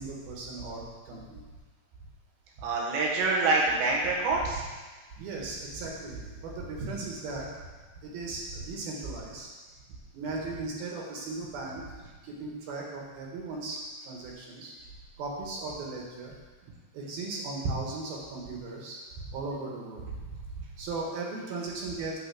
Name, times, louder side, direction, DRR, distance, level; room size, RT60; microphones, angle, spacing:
voice 1, 0.0-1.4 4.3-4.7 5.2-7.5 8.0-9.5 10.1-11.8 12.2-13.8 14.0-14.7 15.2-16.3 16.9-19.0 19.3-22.2, right 3 dB, 65° right, -2 dB, 3.4 m, -37 dB
voice 2, 2.6-4.6, right 3 dB, 90° right, -3 dB, 3.9 m, -26 dB
9.2 x 5.2 x 7.7 m, 1.4 s
omnidirectional pair, 4.8 m